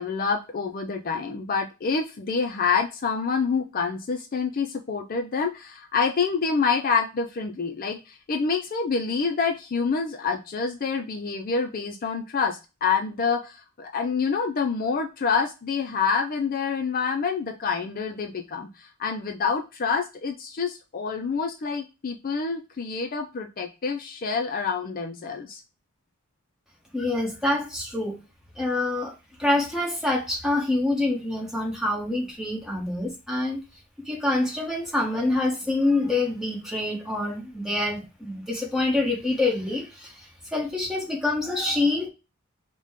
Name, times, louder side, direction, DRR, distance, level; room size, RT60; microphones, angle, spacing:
voice 1, 0.0-25.6, left 5 dB, 45° left, 5 dB, 0.4 m, -27 dB
voice 2, 26.9-28.2 28.6-29.1 29.4-33.6 34.0-42.1, left 2 dB, ahead, -1 dB, 1.1 m, -26 dB
5.0 x 2.2 x 3.5 m, 0.28 s
head